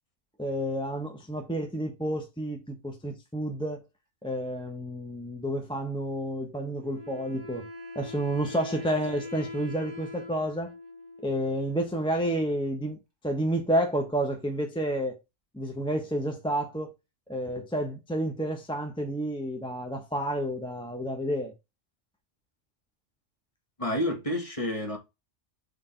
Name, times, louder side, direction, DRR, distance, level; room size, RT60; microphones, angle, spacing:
voice 1, 0.4-3.8 4.2-7.7 7.9-10.7 11.2-13.0 13.2-15.2 15.5-16.9 17.3-21.5, right 1 dB, 5° left, 0.9 m, -30 dB
Wind instrument woodwind instrument, 6.8-12.3, left 3 dB, 20° right, 1.7 m, -42 dB
voice 2, 23.8-25.0, left 1 dB, 25° left, 1.7 m, -29 dB
6.3 x 3.8 x 4.4 m
omnidirectional pair, 1.4 m